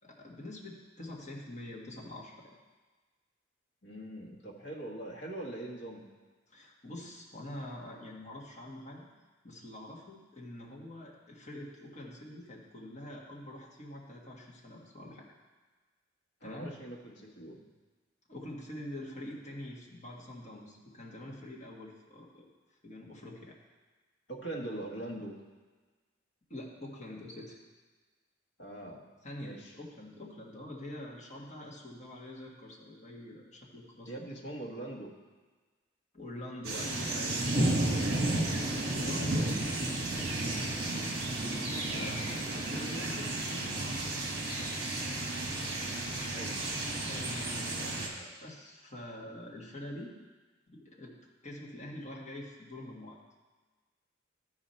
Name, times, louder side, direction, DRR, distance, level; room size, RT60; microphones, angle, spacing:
voice 1, 0.0-2.6 6.5-9.1 9.4-15.3 16.4-16.7 18.3-22.4 22.8-23.6 26.5-27.6 29.2-34.3 36.1-38.2 38.9-39.4 41.5-44.6 47.0-50.1 50.7-51.1 51.4-53.2, left 1 dB, 35° left, -3 dB, 1.5 m, -45 dB
voice 2, 3.8-6.1 16.4-17.6 24.3-25.4 28.6-29.1 29.4-29.7 34.1-35.1 39.1-39.8 41.9-42.2 46.3-46.6, right 1 dB, 60° left, -1 dB, 1.5 m, -42 dB
sound 1, 36.6-48.1, right 2 dB, 55° right, 1.4 m, -32 dB
13.0 x 4.8 x 4.3 m, 1.3 s
head